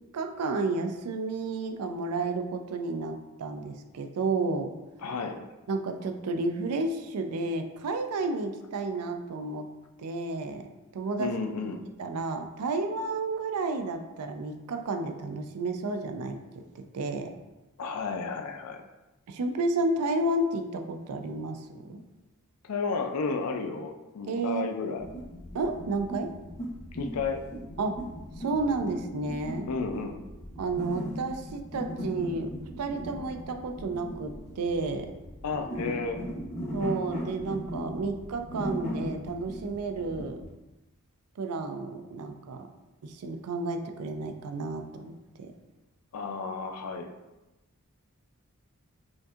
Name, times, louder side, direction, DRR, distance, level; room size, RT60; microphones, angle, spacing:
voice 1, 0.1-4.7 5.7-9.7 10.0-11.3 12.0-16.4 16.8-17.3 19.3-22.0 24.3-24.7 25.5-26.3 27.8-28.0 28.4-29.7 30.6-35.1 36.7-40.4 41.4-42.7 43.0-45.5, right 3 dB, 85° right, 6 dB, 0.4 m, -31 dB
voice 2, 5.0-5.5 11.2-11.8 17.8-18.8 22.6-25.1 26.9-27.4 29.7-30.2 35.4-36.2 46.1-47.1, left 4 dB, 85° left, 4 dB, 0.4 m, -32 dB
sound 1, 25.0-40.5, equal, 30° left, 0.8 m, -38 dB
5.2 x 2.6 x 2.4 m, 1.0 s
head